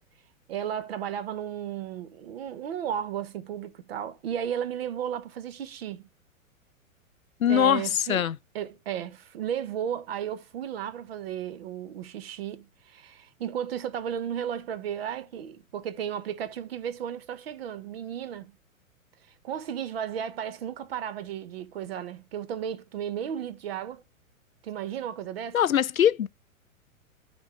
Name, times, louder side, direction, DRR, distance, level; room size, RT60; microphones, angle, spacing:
voice 1, 0.5-6.1 7.5-8.3 8.5-18.5 19.4-24.0 24.6-25.6, right 9 dB, 45° right, 1.2 m, -34 dB
voice 2, 7.4-8.4 25.5-26.3, left 9 dB, 75° left, 0.6 m, -22 dB
12.0 x 4.4 x 4.7 m
figure-of-eight pair, 110°, 42 cm